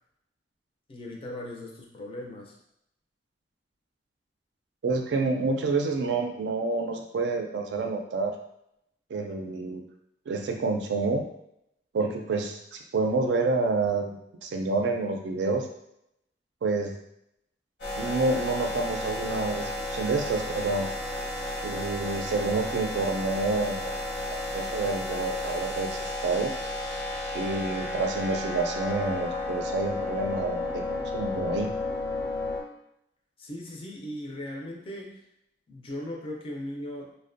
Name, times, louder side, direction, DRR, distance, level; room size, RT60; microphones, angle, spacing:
voice 1, 0.9-2.5 33.4-35.2 35.7-37.1, left 1 dB, 30° left, 0 dB, 0.4 m, -38 dB
voice 2, 4.8-8.4 9.1-9.8 10.3-11.2 11.9-15.7 16.6-16.9 18.0-20.9 21.6-24.0 24.5-26.5 27.3-31.7, right 3 dB, 80° right, 4 dB, 0.4 m, -28 dB
sound 1, 17.8-32.6, left 2 dB, 70° left, 0.8 m, -32 dB
2.5 x 2.1 x 2.4 m, 0.77 s
head